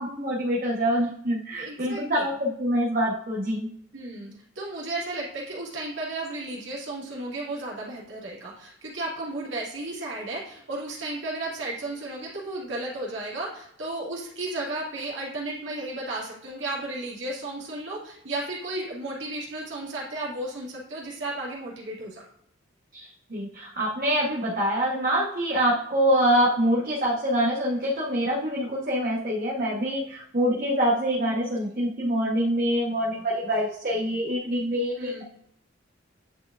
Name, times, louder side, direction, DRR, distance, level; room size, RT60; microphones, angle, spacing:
voice 1, 0.0-3.7 22.9-35.2, equal, 45° right, -6 dB, 1.2 m, -25 dB
voice 2, 1.6-2.2 3.9-22.2 31.7-31.8 34.9-35.2, right 2 dB, 70° right, -4 dB, 2.2 m, -34 dB
9.4 x 4.7 x 2.5 m, 0.70 s
head